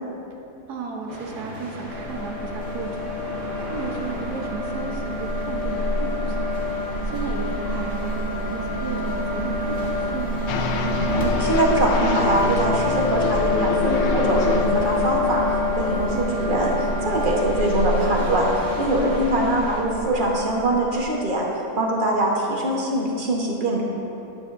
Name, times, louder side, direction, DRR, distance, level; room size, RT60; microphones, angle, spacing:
voice 1, 0.7-3.2 3.7-6.5 7.0-10.4 15.9-16.3 18.9-19.2, right 4 dB, 80° right, 0 dB, 1.6 m, -34 dB
sound 1, 1.1-19.8, left 1 dB, 50° right, 2.1 m, -37 dB
sound 2, 1.9-21.1, left 2 dB, 35° left, 1.7 m, -26 dB
sound 3, 10.5-15.5, left 5 dB, 65° left, 0.7 m, -28 dB
voice 2, 11.1-15.4 15.8-16.7 17.0-21.5 21.7-23.8, right 1 dB, 35° right, -2 dB, 1.3 m, -23 dB
12.5 x 9.7 x 2.7 m, 2.9 s
omnidirectional pair, 1.7 m